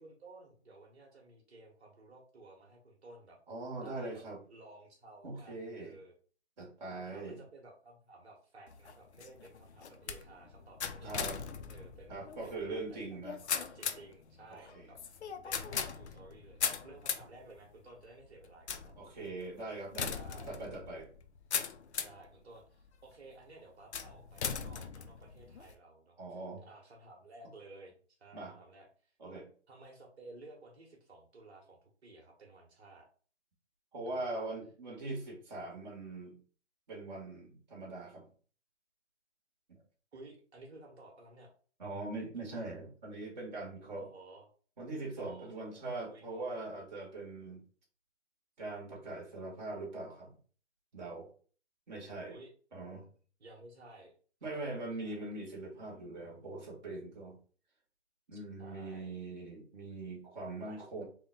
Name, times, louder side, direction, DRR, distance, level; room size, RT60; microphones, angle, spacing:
voice 1, 0.0-3.4 3.8-4.2 4.5-6.1 6.9-12.1 12.4-13.2 13.5-18.9 20.1-20.5 22.0-27.9 28.2-29.1 29.7-33.1 34.1-34.5 40.1-41.5 44.0-44.5 45.2-46.7 52.3-52.5 53.4-54.1 54.4-55.3 58.3-59.1 60.6-61.0, right 2 dB, 65° right, -1 dB, 1.3 m, -55 dB
voice 2, 3.5-4.4 5.2-6.0 6.6-7.4 11.0-11.4 12.1-13.4 14.5-14.9 19.0-20.1 20.4-21.1 26.2-26.6 28.3-28.6 29.2-29.5 33.9-36.4 36.9-38.3 41.8-44.0 44.8-47.6 48.6-50.4 50.9-51.3 51.9-52.4 52.7-53.0 54.4-57.4 58.3-61.0, right 2 dB, 40° right, -3 dB, 1.3 m, -42 dB
sound 1, 8.7-22.3 22.9-23.3 23.9-25.7, left 7 dB, 70° left, 0.6 m, -40 dB
3.6 x 2.2 x 3.8 m, 0.41 s
hypercardioid pair, 170°, 35 cm